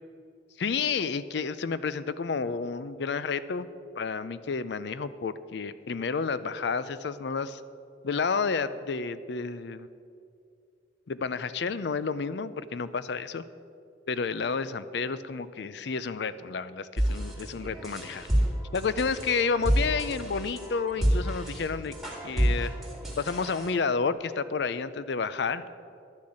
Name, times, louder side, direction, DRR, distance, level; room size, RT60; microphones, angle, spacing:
voice 1, 0.6-3.7 4.0-7.6 8.0-9.9 11.1-13.4 14.1-18.3 18.7-21.9 22.2-22.7 23.2-25.6, left 5 dB, 60° left, 14 dB, 0.5 m, -30 dB
sound 1, 17.0-23.7, equal, ahead, 2.2 m, -29 dB
11.5 x 6.3 x 8.5 m, 2.4 s
head